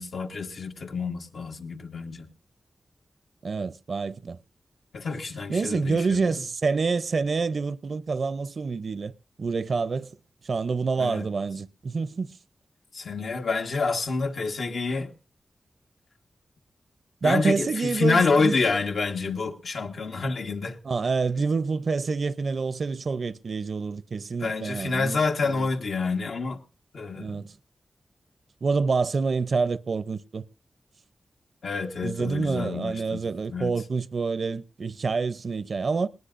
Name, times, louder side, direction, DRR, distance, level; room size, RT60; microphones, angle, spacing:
voice 1, 0.0-2.3 4.9-6.4 11.0-11.3 12.9-15.1 17.2-20.8 24.4-26.6 26.9-27.4 31.6-33.2 33.5-33.7, left 4 dB, 80° left, 1.5 m, -28 dB
voice 2, 3.4-4.4 5.5-9.1 9.4-10.2 10.4-12.4 17.2-18.5 20.8-25.7 27.2-27.5 28.6-30.4 32.0-36.1, right 4 dB, 60° right, 0.6 m, -27 dB
20.0 x 18.5 x 2.6 m
wide cardioid pair, 100°, 0 cm